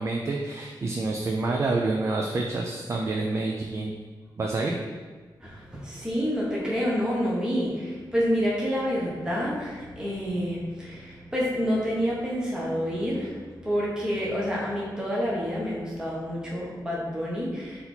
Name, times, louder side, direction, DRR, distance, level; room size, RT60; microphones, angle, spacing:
voice 1, 0.0-3.9 4.4-4.8, right 3 dB, 35° right, 1 dB, 0.3 m, -28 dB
voice 2, 5.4-17.8, equal, 10° right, -5 dB, 0.9 m, -28 dB
4.1 x 2.7 x 4.2 m, 1.5 s
wide cardioid pair, 140°, 8 cm